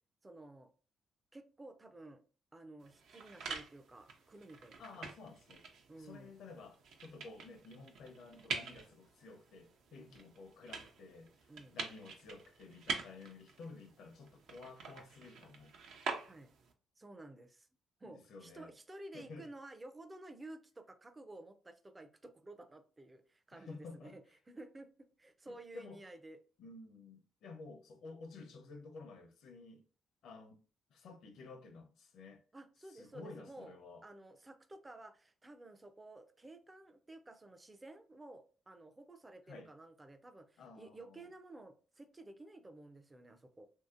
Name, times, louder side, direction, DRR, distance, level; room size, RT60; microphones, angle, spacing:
voice 1, 0.2-0.7 1.3-2.2 2.5-5.0 5.9-6.3 10.0-10.2 11.5-11.8 16.3-16.5 17.0-17.7 18.0-24.2 24.5-24.9 25.2-26.4 32.5-33.8 34.0-43.7, right 2 dB, 20° right, 0.4 m, -53 dB
sound 1, 2.8-16.7, right 4 dB, 75° right, 0.6 m, -46 dB
voice 2, 4.8-5.6 6.0-15.7 18.0-18.7 19.1-19.5 23.5-24.1 25.4-26.0 26.6-29.8 30.2-30.6 30.9-32.4 32.9-34.0 39.5-39.7 40.6-41.3, left 3 dB, 75° left, 0.7 m, -52 dB
2.9 x 2.7 x 2.4 m
cardioid pair, 90°, 0 cm